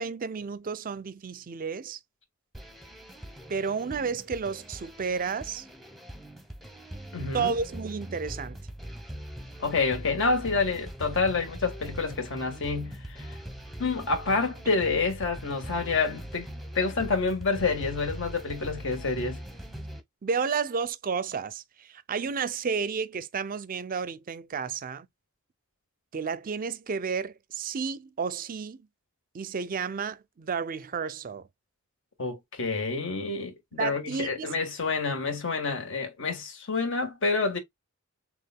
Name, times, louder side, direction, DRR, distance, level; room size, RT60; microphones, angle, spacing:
voice 1, 0.0-2.0 3.5-5.7 7.3-8.6 20.2-25.1 26.1-28.9 29.3-31.5 33.8-34.6, right 5 dB, 40° right, 0.5 m, -32 dB
sound 1, 2.5-20.0, right 1 dB, ahead, 0.8 m, -41 dB
voice 2, 7.1-7.5 9.6-13.4 13.8-16.5 16.7-19.4 32.2-37.6, left 4 dB, 65° left, 1.5 m, -28 dB
6.5 x 2.4 x 2.2 m
head